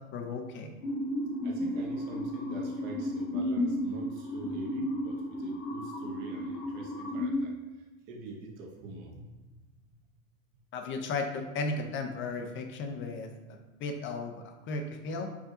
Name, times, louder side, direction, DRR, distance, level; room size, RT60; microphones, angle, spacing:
voice 1, 0.1-0.7 10.7-13.3 13.8-15.3, left 3 dB, 30° left, 4 dB, 0.6 m, -35 dB
sound 1, 0.8-7.4, left 1 dB, 75° left, 0.8 m, -33 dB
voice 2, 1.4-9.2, right 3 dB, 50° right, 1 dB, 1.0 m, -46 dB
4.8 x 2.5 x 3.8 m, 1.2 s
hypercardioid pair, 100°, 40 cm